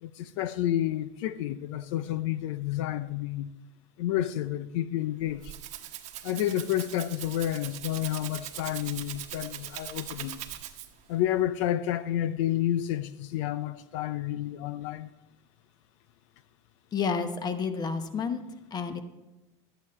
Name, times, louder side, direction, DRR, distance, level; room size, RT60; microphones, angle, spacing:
voice 1, 0.0-3.5 4.0-5.5 6.2-10.4 11.1-15.1, left 12 dB, 80° left, 0.6 m, -30 dB
Rattle (instrument), 5.2-11.1, right 13 dB, 50° right, 1.1 m, -41 dB
voice 2, 16.9-18.4 18.7-19.0, left 5 dB, 25° left, 1.0 m, -30 dB
12.5 x 9.0 x 4.3 m
supercardioid pair, 140°, 16 cm